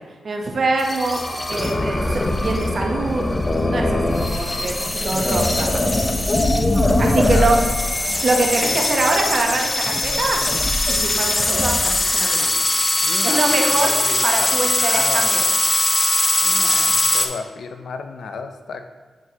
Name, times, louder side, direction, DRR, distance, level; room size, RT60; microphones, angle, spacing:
voice 1, 0.2-1.2 1.5-3.3 3.7-5.7 7.0-7.6 8.2-10.4 10.9-12.6 13.2-13.9 14.2-15.4, right 2 dB, 55° right, 2 dB, 0.9 m, -23 dB
sound 1, 0.8-17.3, left 2 dB, 25° left, 0.5 m, -20 dB
voice 2, 7.1-7.6 8.6-8.9 13.0-15.3 16.4-18.8, left 5 dB, 75° left, 7 dB, 0.4 m, -33 dB
7.7 x 4.6 x 2.8 m, 1.4 s
cardioid pair, 70°, 0 cm